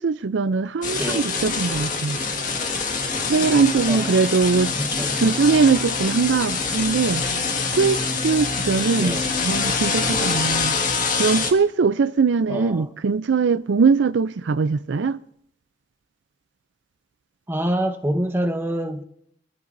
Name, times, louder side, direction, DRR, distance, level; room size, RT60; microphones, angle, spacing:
voice 1, 0.0-2.2 3.2-4.7 5.1-7.3 7.7-10.7 11.2-15.2, right 5 dB, 75° right, 0.5 m, -21 dB
sound 1, 0.8-11.5, left 4 dB, 45° left, 1.8 m, -25 dB
voice 2, 1.0-1.3 3.9-4.1 4.8-5.2 9.0-9.3 12.5-12.9 17.5-19.0, right 1 dB, 10° right, 1.2 m, -26 dB
26.0 x 14.5 x 2.6 m
head